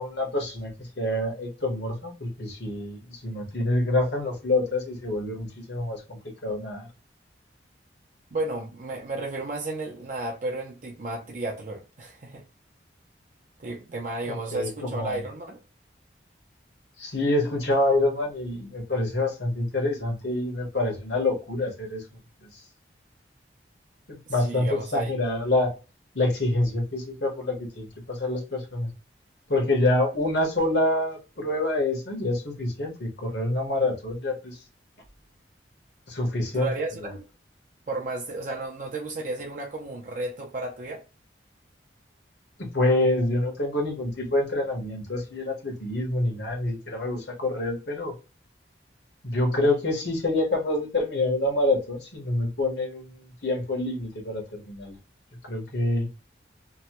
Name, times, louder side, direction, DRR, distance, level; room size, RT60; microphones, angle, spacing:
voice 1, 0.0-6.9 14.2-15.2 17.0-22.0 22.4-22.6 24.1-25.7 26.1-28.9 29.5-34.6 36.1-36.7 37.0-37.1 42.6-48.1 49.2-55.0 55.4-56.1, left 2 dB, 70° left, 1.2 m, -27 dB
voice 2, 8.3-12.4 13.6-15.6 24.3-25.1 36.5-37.3 37.9-41.0, right 2 dB, 45° right, 0.5 m, -33 dB
3.0 x 2.2 x 2.9 m
head